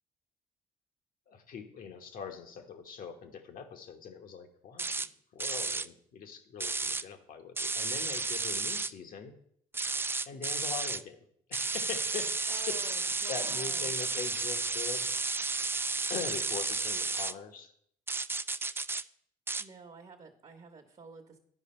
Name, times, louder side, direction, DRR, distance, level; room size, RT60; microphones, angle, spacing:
voice 1, 1.3-9.3 10.3-15.1 16.1-17.7, left 6 dB, 65° left, 5 dB, 1.2 m, -42 dB
sound 1, 4.8-5.1 5.4-5.9 6.6-7.0 7.6-8.9 9.7-11.0 11.5-17.3 18.1-19.0 19.5-19.6, right 3 dB, 15° right, 0.3 m, -32 dB
voice 2, 12.5-14.0 19.6-21.4, right 4 dB, 40° right, 2 dB, 1.1 m, -50 dB
10.5 x 5.0 x 4.4 m, 0.66 s
supercardioid pair, 65°, 15 cm